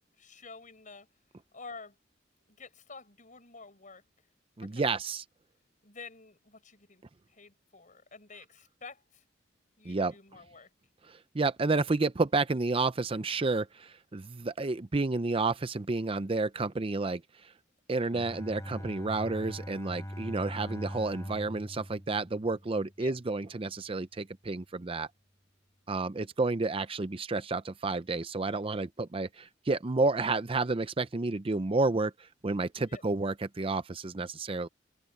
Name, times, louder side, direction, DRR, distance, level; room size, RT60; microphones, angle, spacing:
voice 1, 0.2-1.1 1.5-2.0 2.5-4.0 4.6-4.9 5.8-7.0 7.3-9.2 9.8-10.7 23.0-23.1 32.8-33.0, left 4 dB, 45° left, 6.2 m, -49 dB
voice 2, 4.6-5.2 9.8-10.1 11.1-17.5 17.9-25.1 25.9-34.7, right 3 dB, 30° right, 0.6 m, -30 dB
Bowed string instrument, 18.1-23.1, equal, 15° left, 6.5 m, -42 dB
open air
head